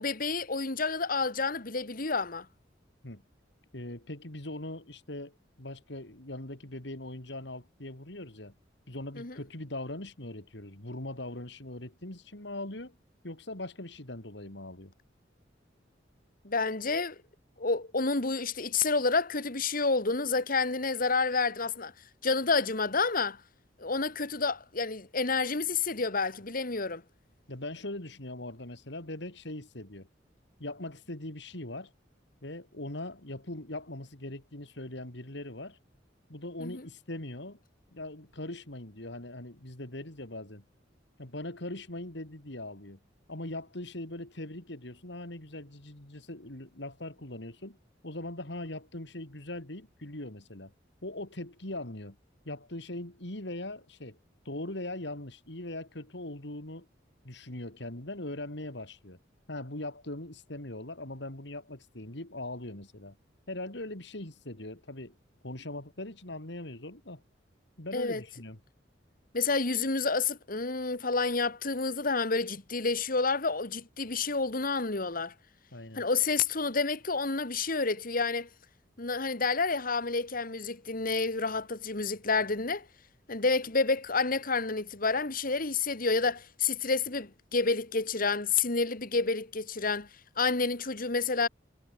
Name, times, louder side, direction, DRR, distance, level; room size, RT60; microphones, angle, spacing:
voice 1, 0.0-2.5 9.2-9.3 16.4-17.2 17.6-21.9 22.2-23.4 23.8-27.0 36.6-36.9 67.9-68.2 69.3-75.3 76.0-78.5 79.0-82.9 83.3-90.1 90.4-91.5, left 4 dB, 50° left, 2.2 m, -29 dB
voice 2, 3.7-8.5 8.9-13.0 13.2-14.9 27.5-30.1 30.6-31.9 32.4-35.8 36.3-37.6 37.9-40.6 41.2-43.0 43.3-47.8 48.0-50.7 51.0-52.2 52.5-54.2 54.5-56.9 57.2-59.2 59.5-63.2 63.5-65.1 65.4-67.2 67.8-68.6 75.7-76.0, left 1 dB, 65° left, 3.6 m, -40 dB
head